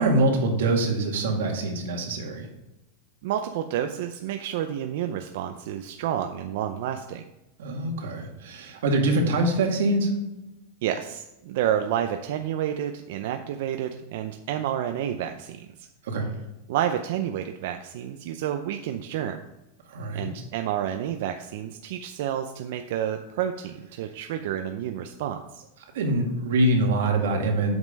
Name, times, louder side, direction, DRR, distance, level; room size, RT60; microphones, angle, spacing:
voice 1, 0.0-2.5 7.6-10.1 16.0-16.3 19.9-20.3 25.9-27.7, right 2 dB, 85° right, 1 dB, 2.1 m, -24 dB
voice 2, 3.2-7.2 10.8-15.9 16.7-19.4 20.1-25.6, right 10 dB, 50° right, 6 dB, 0.5 m, -30 dB
7.8 x 5.5 x 5.2 m, 0.95 s
supercardioid pair, 180°, 0 cm